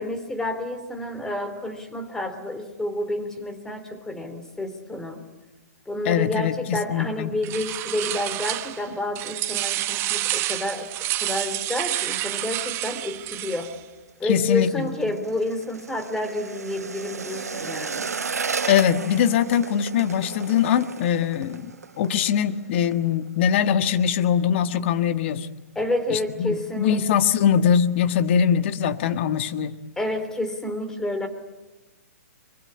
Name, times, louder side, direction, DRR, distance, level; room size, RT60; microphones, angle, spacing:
voice 1, 0.0-5.2 5.9-10.9 11.2-13.7 14.2-18.1 25.7-27.0 30.0-31.3, left 1 dB, 5° left, 8 dB, 3.1 m, -29 dB
voice 2, 6.0-7.4 14.2-14.9 18.7-21.7 22.0-25.5 26.1-29.8, left 8 dB, 50° left, 11 dB, 1.6 m, -22 dB
sound 1, 7.4-8.9 9.1-13.8, right 14 dB, 30° right, 1.4 m, -29 dB
sound 2, 14.0-23.0 23.3-23.6 23.9-24.4 24.8-24.9, right 5 dB, 85° right, 1.1 m, -34 dB
24.5 x 22.5 x 9.9 m, 1.1 s
hypercardioid pair, 130°, 8 cm